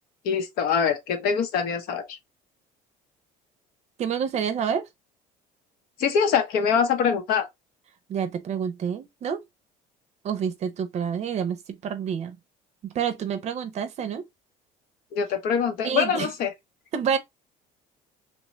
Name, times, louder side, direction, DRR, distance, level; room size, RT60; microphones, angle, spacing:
voice 1, 0.2-2.1 6.0-7.5 15.1-16.5, left 6 dB, 65° left, 0.8 m, -24 dB
voice 2, 4.0-4.8 8.1-9.4 10.2-12.4 12.8-14.2 15.8-16.3 16.9-17.2, right 7 dB, 45° right, 0.6 m, -28 dB
3.0 x 2.2 x 2.8 m
cardioid pair, 125°, 16 cm